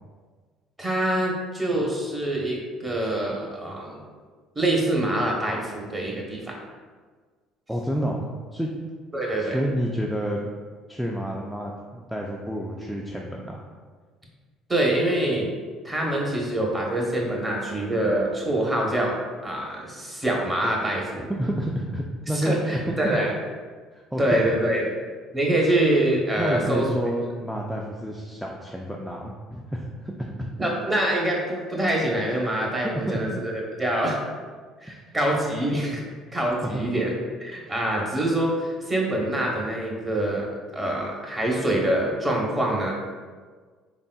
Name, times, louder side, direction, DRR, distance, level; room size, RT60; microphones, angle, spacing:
voice 1, 0.8-4.1 4.5-6.6 9.1-9.6 14.7-15.5 15.8-19.2 19.4-21.3 22.4-23.3 24.2-24.9 25.3-26.9 30.6-34.2 34.8-36.0 36.3-37.1 37.4-42.9, right 1 dB, 20° right, -2 dB, 1.0 m, -25 dB
voice 2, 7.7-8.7 9.4-10.5 10.9-13.6 21.4-23.2 23.9-24.4 26.4-30.3 33.1-33.2, equal, ahead, -2 dB, 0.4 m, -29 dB
4.0 x 3.6 x 2.3 m, 1.5 s
supercardioid pair, 100°, 0 cm